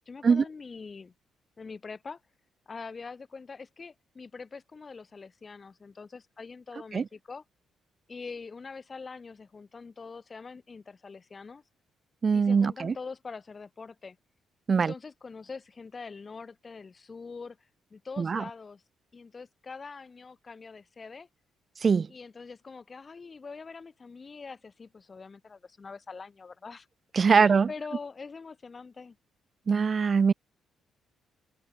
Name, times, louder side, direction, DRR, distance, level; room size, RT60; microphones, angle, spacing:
voice 1, 0.1-1.1 1.6-2.2 2.7-7.4 8.1-11.6 12.3-14.2 14.7-18.8 19.1-21.3 22.1-26.9 27.2-29.2, left 4 dB, 35° left, 0.9 m, -44 dB
voice 2, 12.2-12.9 14.7-14.9 18.2-18.4 21.8-22.1 27.1-27.7 29.7-30.3, right 5 dB, 40° right, 0.3 m, -22 dB
cardioid pair, 90°, 0 cm